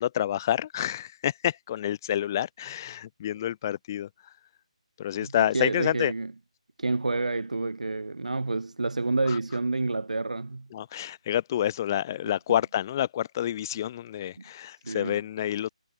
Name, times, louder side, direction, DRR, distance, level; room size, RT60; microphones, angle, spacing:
voice 1, 0.0-4.1 5.0-6.1 9.3-9.4 10.7-15.7, left 11 dB, 30° left, 3.7 m, -28 dB
voice 2, 5.2-6.3 6.8-10.7 14.4-14.5 14.8-15.2, right 3 dB, 85° right, 7.4 m, -29 dB
figure-of-eight pair, 160°, 4 cm